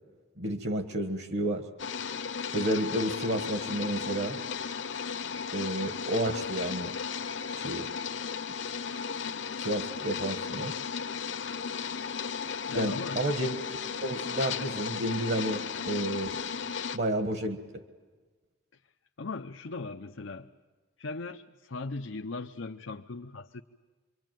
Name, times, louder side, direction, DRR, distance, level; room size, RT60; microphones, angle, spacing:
voice 1, 0.4-1.7 2.5-4.4 5.5-6.9 7.5-7.9 9.6-10.7 12.7-13.5 14.0-16.4 16.9-17.6, right 1 dB, 60° right, 7 dB, 1.5 m, -31 dB
sound 1, 1.8-17.0, left 6 dB, 70° left, 1.0 m, -35 dB
voice 2, 12.7-13.2 19.2-20.5 21.0-23.6, left 3 dB, 90° left, 5 dB, 0.8 m, -38 dB
26.5 x 24.0 x 9.2 m, 1.3 s
head